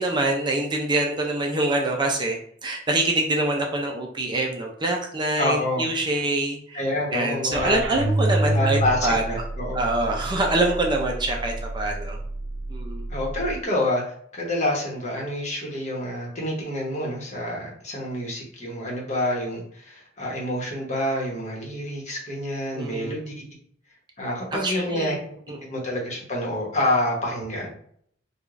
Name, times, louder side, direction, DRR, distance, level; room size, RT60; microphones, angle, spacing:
voice 1, 0.0-6.8 7.1-9.4 9.7-12.2 12.7-13.1 22.7-23.1 24.5-25.2 25.5-25.7, right 2 dB, 25° right, 1 dB, 0.5 m, -25 dB
voice 2, 5.4-5.9 6.7-7.8 8.5-9.8 13.1-23.4 24.2-25.2 25.7-27.7, left 1 dB, 40° left, -2 dB, 1.1 m, -27 dB
sound 1, 7.5-13.5, right 2 dB, 80° right, 0.5 m, -28 dB
4.7 x 2.3 x 2.5 m, 0.64 s
head